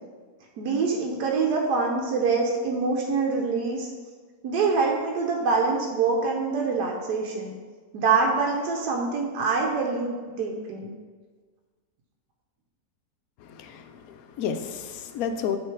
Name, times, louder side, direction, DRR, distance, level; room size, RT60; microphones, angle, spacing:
voice 1, 0.6-3.9 4.4-7.6 7.9-10.9, right 4 dB, 85° right, 0 dB, 1.3 m, -25 dB
voice 2, 13.4-15.6, left 7 dB, 70° left, 7 dB, 1.0 m, -31 dB
7.8 x 3.2 x 4.4 m, 1.5 s
omnidirectional pair, 1.7 m